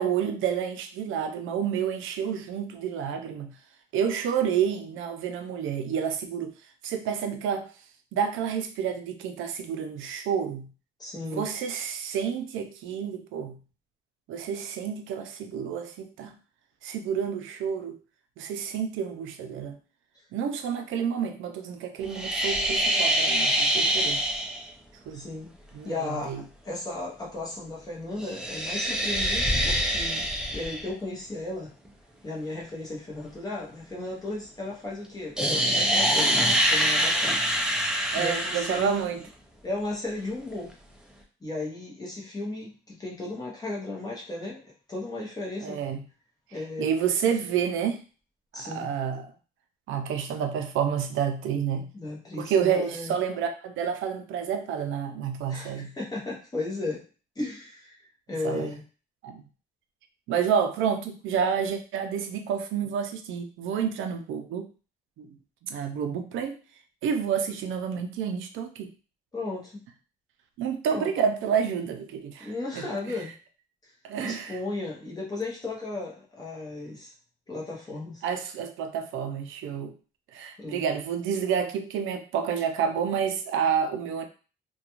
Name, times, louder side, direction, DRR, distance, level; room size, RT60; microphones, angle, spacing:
voice 1, 0.0-3.5 3.9-6.5 6.8-7.7 8.1-10.7 11.2-13.6 14.3-16.4 16.8-18.0 18.4-19.8 20.3-24.2 25.1-25.2 25.7-26.4 38.1-39.2 45.6-46.0 46.8-48.0 48.6-49.3 49.9-51.9 52.4-55.9 58.4-58.7 59.2-59.4 60.3-64.7 65.2-65.4 65.7-66.6 67.0-68.9 70.6-72.9 74.0-74.6 78.2-79.9 80.3-84.2, right 7 dB, 75° right, 6 dB, 0.4 m, -29 dB
voice 2, 11.0-11.4 25.1-25.5 25.8-31.7 32.2-37.3 38.1-39.1 39.6-40.7 41.4-45.8 46.5-46.9 48.5-48.9 51.9-53.1 55.5-57.0 57.4-58.0 58.3-58.8 69.3-69.7 70.9-71.1 72.4-73.3 74.2-77.1 77.5-78.2 80.6-80.8, left 2 dB, 20° left, -4 dB, 0.8 m, -35 dB
sound 1, 22.1-24.6 28.2-30.9 35.4-39.0, right 1 dB, 5° right, 0.3 m, -25 dB
2.4 x 2.2 x 2.9 m, 0.36 s
cardioid pair, 155°, 21 cm